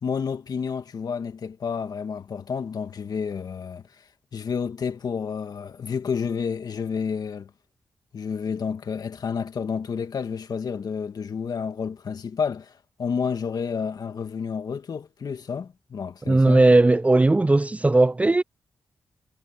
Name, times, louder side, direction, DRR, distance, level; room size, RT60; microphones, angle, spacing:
voice 1, 0.0-3.8 4.3-7.5 8.1-12.7 13.0-16.6, left 6 dB, 70° left, 1.9 m, -30 dB
voice 2, 16.3-18.4, right 2 dB, 20° right, 0.4 m, -17 dB
cardioid pair, 65°, 7 cm